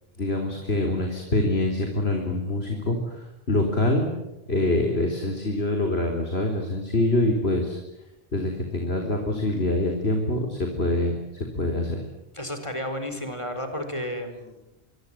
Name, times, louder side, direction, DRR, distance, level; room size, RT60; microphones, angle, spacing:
voice 1, 0.2-3.2 3.5-4.1 4.5-7.8 8.3-12.0, left 1 dB, 85° left, 2 dB, 4.1 m, -25 dB
voice 2, 12.3-14.7, left 1 dB, 30° left, 7 dB, 4.6 m, -32 dB
25.5 x 25.0 x 9.2 m, 0.97 s
omnidirectional pair, 1.0 m